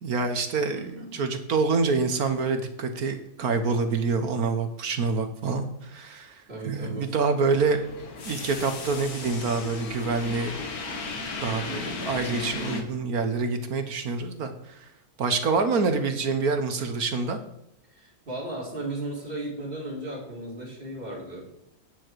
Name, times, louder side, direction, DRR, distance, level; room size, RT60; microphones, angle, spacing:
voice 1, 0.0-7.8 8.2-10.6 11.4-14.9 15.2-17.4, right 4 dB, 70° right, 8 dB, 1.6 m, -26 dB
voice 2, 0.7-1.3 6.5-7.1 17.9-21.5, right 1 dB, 35° right, -4 dB, 3.9 m, -36 dB
sound 1, 7.5-12.8, left 3 dB, 70° left, 2.0 m, -35 dB
11.5 x 9.5 x 4.7 m, 0.83 s
omnidirectional pair, 1.7 m